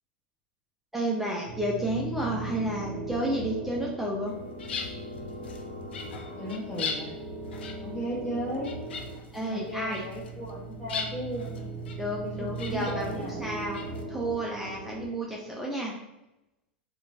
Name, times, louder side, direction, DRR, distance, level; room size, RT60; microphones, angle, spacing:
voice 1, 0.9-4.3 9.3-10.0 12.0-13.8 14.1-15.9, right 1 dB, 5° right, -3 dB, 0.4 m, -31 dB
sound 1, 1.5-15.1, right 2 dB, 45° right, 0.8 m, -39 dB
sound 2, 4.3-14.0, left 5 dB, 75° left, 0.4 m, -41 dB
voice 2, 6.4-7.1 7.8-8.7 9.4-11.6 12.2-13.3, equal, 20° left, -10 dB, 1.1 m, -35 dB
2.9 x 2.1 x 2.4 m, 0.93 s
hypercardioid pair, 95°, 6 cm